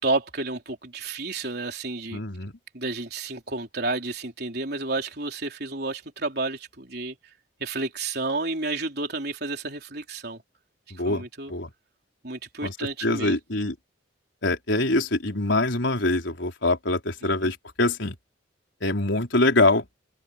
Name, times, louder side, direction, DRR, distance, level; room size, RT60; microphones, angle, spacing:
voice 1, 0.0-2.2 2.7-7.2 7.6-10.4 11.0-11.5 12.2-13.4 17.2-17.5, right 3 dB, 50° right, 4.2 m, -31 dB
voice 2, 2.1-2.5 10.9-11.2 11.5-11.7 12.6-12.7 13.0-13.7 14.4-18.1 18.8-19.9, left 2 dB, 70° left, 4.2 m, -24 dB
head